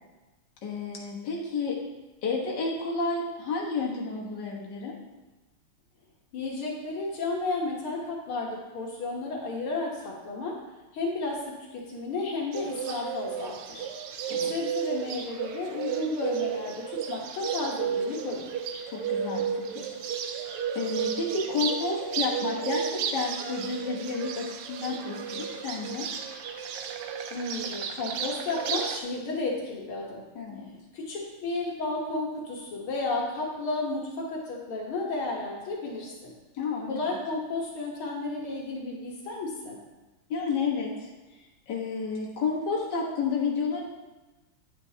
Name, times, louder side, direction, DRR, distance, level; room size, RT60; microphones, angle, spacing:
voice 1, 0.6-1.9 2.2-5.1 14.2-14.5 18.9-20.0 20.7-26.1 30.4-30.7 36.6-37.0 40.3-41.1 41.7-43.8, left 4 dB, 55° left, -3 dB, 1.9 m, -31 dB
voice 2, 6.3-10.6 10.9-13.9 14.5-18.5 27.3-30.3 30.9-36.3 36.9-39.8, left 3 dB, 75° left, -2 dB, 2.0 m, -32 dB
Bird, 12.5-29.0, right 7 dB, 90° right, 1.6 m, -33 dB
9.4 x 9.1 x 2.8 m, 1.1 s
omnidirectional pair, 2.4 m